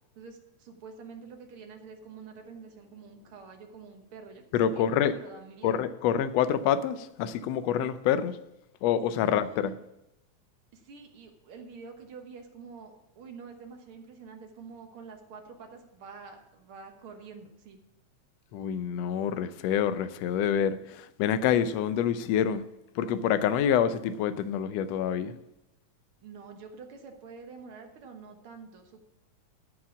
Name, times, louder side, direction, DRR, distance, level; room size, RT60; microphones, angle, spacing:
voice 1, 0.2-4.5 4.7-5.8 9.3-9.8 10.7-17.8 26.2-29.0, right 5 dB, 55° right, 1.8 m, -47 dB
voice 2, 4.5-5.1 5.6-8.4 8.8-9.7 18.5-22.7 22.9-25.3, left 9 dB, 75° left, 1.6 m, -27 dB
13.0 x 4.9 x 7.1 m
omnidirectional pair, 3.4 m